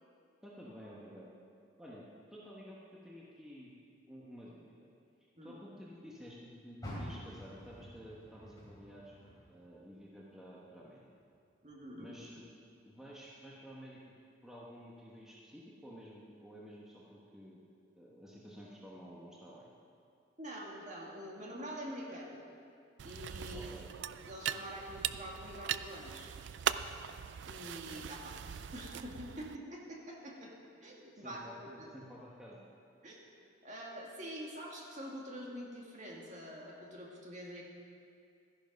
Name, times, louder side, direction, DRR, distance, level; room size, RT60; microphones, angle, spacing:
voice 1, 0.4-1.3 1.8-3.7 4.1-4.9 5.4-9.1 9.5-11.1 12.0-12.4 12.8-14.0 14.4-17.6 17.9-19.7 23.5-23.9 31.1-32.7, equal, 5° right, -6 dB, 1.2 m, -51 dB
Car, 6.8-10.1 10.5-11.8 12.3-12.4 13.0-13.1, equal, 20° left, 3.4 m, -48 dB
voice 2, 11.6-12.1 20.4-22.4 23.0-23.7 24.3-26.3 27.5-30.5 30.8-31.9 33.0-33.2 33.6-37.6, equal, 35° right, -3 dB, 2.0 m, -46 dB
sound 1, 23.0-29.6, right 9 dB, 55° right, 0.3 m, -40 dB
13.5 x 10.5 x 5.3 m, 2.4 s
head